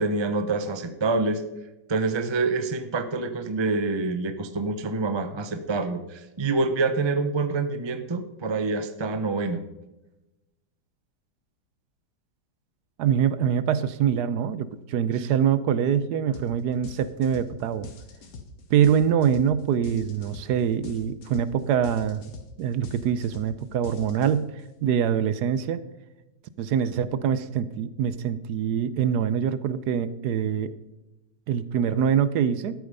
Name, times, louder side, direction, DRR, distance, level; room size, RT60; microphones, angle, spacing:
voice 1, 0.0-1.4 1.9-9.6 15.2-15.3, right 3 dB, 35° right, 9 dB, 0.4 m, -26 dB
voice 2, 13.0-17.9 18.7-22.2 22.6-24.5 24.8-25.8 26.6-30.7 31.5-32.7, right 8 dB, 70° right, 15 dB, 1.1 m, -24 dB
sound 1, 16.3-16.5 16.8-24.6, left 4 dB, 55° left, 1.5 m, -43 dB
13.0 x 8.6 x 5.3 m, 0.99 s
omnidirectional pair, 1.9 m